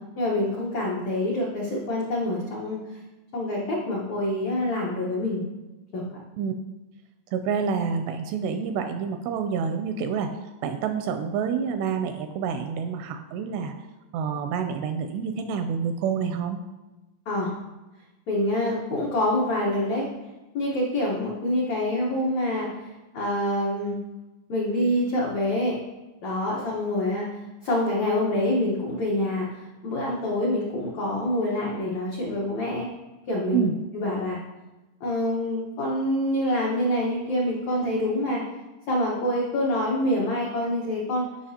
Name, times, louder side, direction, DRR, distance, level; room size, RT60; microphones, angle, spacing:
voice 1, 0.2-3.0 3.3-5.4 5.9-6.0 17.2-17.5 18.3-20.1 20.5-24.0 24.5-25.8 26.2-32.9 33.3-34.4 35.0-38.4 38.9-41.3, left 1 dB, 80° left, -4 dB, 1.6 m, -26 dB
voice 2, 7.3-10.3 10.6-13.7 14.1-16.6 33.5-33.7, right 6 dB, 85° right, 7 dB, 2.4 m, -28 dB
14.5 x 5.8 x 2.8 m, 1.1 s
omnidirectional pair, 5.2 m